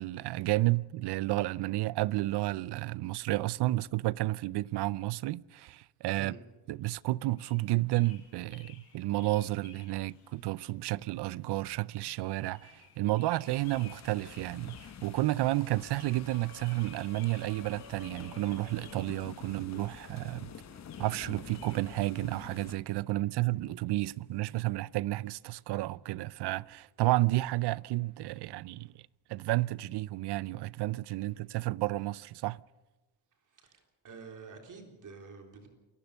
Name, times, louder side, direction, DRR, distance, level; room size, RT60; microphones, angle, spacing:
voice 1, 0.0-6.3 6.7-20.5 21.0-28.9 29.3-32.6, right 18 dB, 80° right, 0.6 m, -31 dB
sound 1, 7.4-21.8, left 7 dB, 70° left, 6.2 m, -58 dB
sound 2, 13.4-22.8, left 7 dB, 45° left, 1.3 m, -48 dB
voice 2, 33.5-35.7, right 4 dB, 50° right, 3.7 m, -49 dB
28.5 x 15.0 x 6.7 m
cardioid pair, 140°, 40 cm